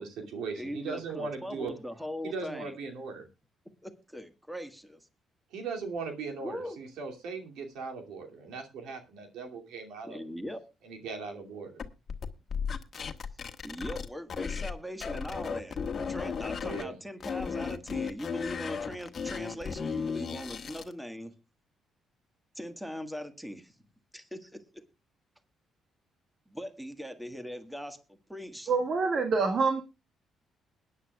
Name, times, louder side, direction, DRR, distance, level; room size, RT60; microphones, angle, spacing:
voice 1, 0.0-1.7 2.2-3.3 5.5-10.2 10.8-11.8 16.6-17.0, right 4 dB, 85° right, 5 dB, 2.5 m, -39 dB
voice 2, 0.5-2.7 3.8-5.1 6.4-6.8 10.0-10.6 13.6-15.8 16.1-21.3 22.5-23.8 24.1-24.6 26.5-28.7, equal, 5° right, 9 dB, 1.6 m, -40 dB
sound 1, 11.8-14.7 15.0-16.8 17.2-20.9, left 6 dB, 45° left, 1.3 m, -35 dB
voice 3, 28.7-29.8, right 4 dB, 55° right, 5 dB, 1.5 m, -26 dB
21.0 x 9.8 x 2.3 m, 0.28 s
cardioid pair, 90°, 0 cm